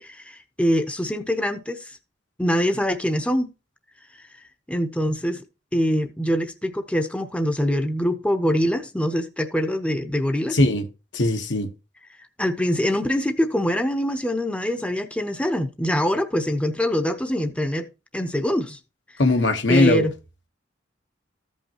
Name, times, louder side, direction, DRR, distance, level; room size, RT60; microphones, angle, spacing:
voice 1, 0.0-1.9 2.4-3.5 4.1-4.3 4.7-5.4 5.7-10.6 12.4-17.9 18.1-18.8 19.7-20.1, equal, 5° left, 0.7 m, -24 dB
voice 2, 10.5-10.9 11.1-11.7 19.2-20.1, left 2 dB, 70° left, 1.1 m, -19 dB
14.5 x 5.5 x 2.9 m
head